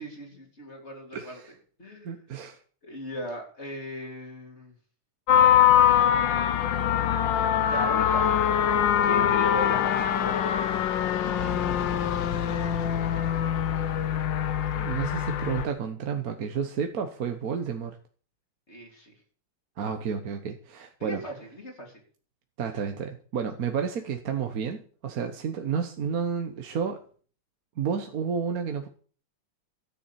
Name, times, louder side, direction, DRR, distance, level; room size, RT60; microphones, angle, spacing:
voice 1, 0.0-1.4 1.8-2.1 2.8-4.7 7.6-8.5 9.0-10.6 18.7-19.1 21.0-22.0, right 1 dB, 30° left, 1 dB, 3.4 m, -38 dB
voice 2, 1.1-1.5 2.0-2.6 9.2-9.3 14.7-18.0 19.8-21.2 22.6-27.0 27.8-28.9, right 7 dB, 50° right, 5 dB, 1.3 m, -31 dB
sound 1, 5.3-15.7, left 9 dB, 65° left, 1.4 m, -23 dB
13.5 x 7.1 x 8.5 m, 0.44 s
omnidirectional pair, 2.4 m